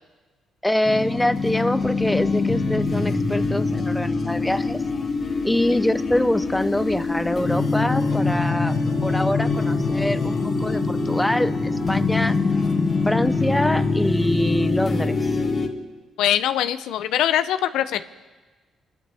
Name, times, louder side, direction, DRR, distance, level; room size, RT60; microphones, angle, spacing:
voice 1, 0.6-4.8 5.4-8.7 9.0-12.4 13.1-15.3, left 1 dB, 5° left, 12 dB, 0.7 m, -25 dB
sound 1, 0.8-15.7, left 3 dB, 40° left, 2.0 m, -23 dB
voice 2, 16.2-18.0, left 11 dB, 90° left, 12 dB, 0.6 m, -22 dB
26.5 x 12.5 x 3.5 m, 1.3 s
cardioid pair, 90°, 0 cm